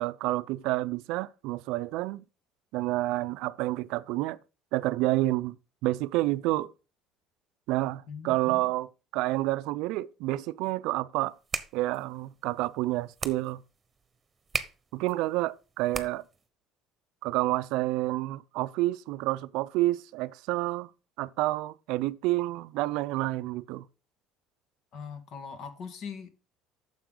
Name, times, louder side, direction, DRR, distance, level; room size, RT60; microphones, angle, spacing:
voice 1, 0.0-2.2 2.7-4.4 4.7-5.5 5.8-6.7 7.7-8.9 9.1-11.3 11.7-13.6 14.9-16.2 17.2-20.9 21.2-23.8, right 18 dB, 75° right, 0.4 m, -29 dB
voice 2, 8.1-8.7 24.9-26.3, left 6 dB, 60° left, 1.8 m, -41 dB
sound 1, 11.2-16.5, right 5 dB, 25° right, 1.1 m, -39 dB
9.5 x 7.0 x 3.8 m
supercardioid pair, 80°, 0 cm